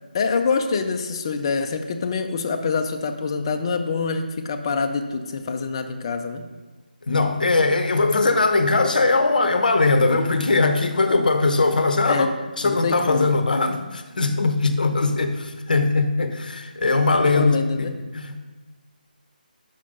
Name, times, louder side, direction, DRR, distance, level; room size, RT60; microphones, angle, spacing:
voice 1, 0.1-6.4 12.1-12.3 12.6-13.3 17.2-17.9, left 4 dB, 30° left, 6 dB, 0.5 m, -25 dB
voice 2, 7.1-12.3 12.6-18.4, left 3 dB, 60° left, 8 dB, 0.8 m, -20 dB
5.7 x 5.1 x 5.2 m, 1.3 s
figure-of-eight pair, 160°, 5 cm